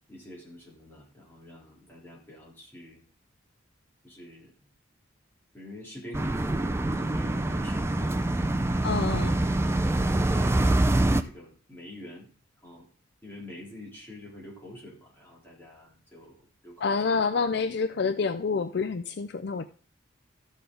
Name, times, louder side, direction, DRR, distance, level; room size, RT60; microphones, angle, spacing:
voice 1, 0.1-3.0 4.0-4.5 5.5-9.3 9.7-10.6 11.2-12.3 12.6-12.9 13.2-16.4 16.6-17.1 17.7-17.8, left 1 dB, 10° left, 3.3 m, -46 dB
sound 1, 6.1-11.2, right 1 dB, 10° right, 0.4 m, -25 dB
voice 2, 8.8-9.4 16.8-19.7, left 5 dB, 50° left, 0.4 m, -28 dB
13.5 x 6.9 x 3.8 m
head